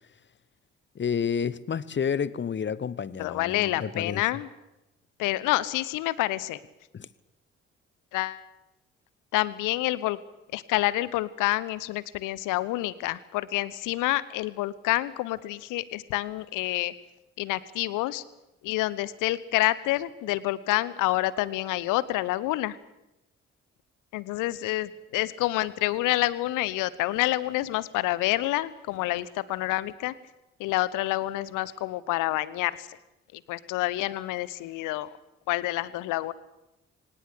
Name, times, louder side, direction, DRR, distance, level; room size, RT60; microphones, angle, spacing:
voice 1, 0.9-4.3 6.9-7.1, left 7 dB, 35° left, 20 dB, 1.1 m, -30 dB
voice 2, 3.2-4.5 5.2-6.6 8.1-8.4 9.3-10.2 10.5-16.9 17.4-18.2 18.6-22.8 24.1-30.1 30.6-33.0 33.3-35.1 35.5-36.3, left 17 dB, 60° left, 19 dB, 1.1 m, -28 dB
24.0 x 19.0 x 8.5 m, 0.94 s
figure-of-eight pair, 40°, 35 cm